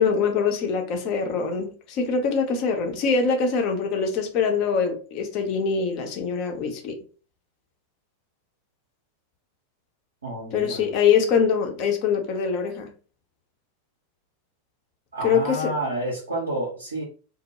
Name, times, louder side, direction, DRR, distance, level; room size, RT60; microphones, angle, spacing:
voice 1, 0.0-7.0 10.5-12.9 15.2-15.7, left 6 dB, 40° left, 0.6 m, -23 dB
voice 2, 10.2-10.9 15.1-17.0, right 1 dB, 70° right, 0.7 m, -29 dB
2.1 x 2.0 x 2.9 m
figure-of-eight pair, 90°, 0 cm